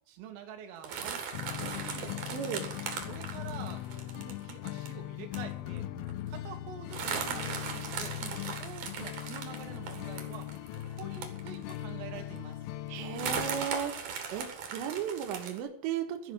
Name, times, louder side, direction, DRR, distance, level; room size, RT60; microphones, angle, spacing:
voice 1, 0.1-2.2 3.1-5.9 6.3-8.2 8.6-10.5 10.8-12.6, right 8 dB, 90° right, 5 dB, 4.2 m, -47 dB
sound 1, 0.8-4.9 5.3-5.5 5.8-5.9 6.1-6.3 6.9-11.9 12.4-12.5 13.1-15.6, right 6 dB, 55° right, 2.6 m, -38 dB
sound 2, 1.3-13.7, left 14 dB, 85° left, 3.5 m, -40 dB
voice 2, 2.3-2.7 6.0-6.1 8.2-8.4 12.9-14.0 14.3-16.3, right 8 dB, 70° right, 4 dB, 3.4 m, -35 dB
13.0 x 5.9 x 9.4 m, 0.66 s
omnidirectional pair, 5.7 m